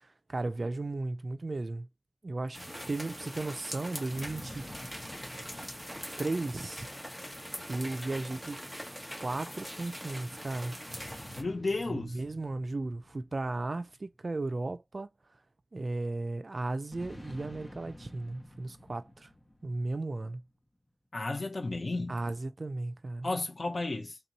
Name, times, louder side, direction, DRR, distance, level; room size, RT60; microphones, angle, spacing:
voice 1, 0.3-1.9 2.2-2.6 2.9-4.6 6.2-6.9 7.7-8.6 9.2-10.8 11.9-15.1 15.7-19.3 19.6-20.4 22.1-23.3, right 2 dB, 65° right, 0.4 m, -35 dB
sound 1, 2.5-11.4, equal, ahead, 1.3 m, -42 dB
sound 2, 4.1-7.7 10.9-14.5 16.9-20.3, left 1 dB, 35° left, 1.2 m, -50 dB
voice 2, 11.4-12.2 21.1-22.2 23.2-24.2, left 2 dB, 70° left, 0.7 m, -33 dB
3.6 x 2.9 x 4.0 m
wide cardioid pair, 65°, 0 cm